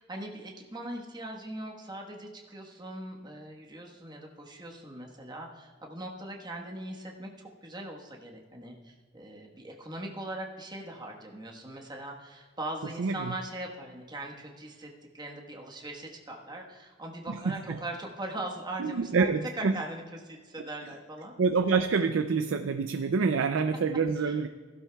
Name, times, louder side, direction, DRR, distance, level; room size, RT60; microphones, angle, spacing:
voice 1, 0.0-21.3 24.2-24.4, right 1 dB, 20° right, 0 dB, 1.3 m, -40 dB
voice 2, 13.0-13.3 17.3-17.8 18.8-19.7 21.4-24.5, right 4 dB, 75° right, 8 dB, 0.5 m, -27 dB
15.5 x 12.0 x 2.3 m, 1.5 s
head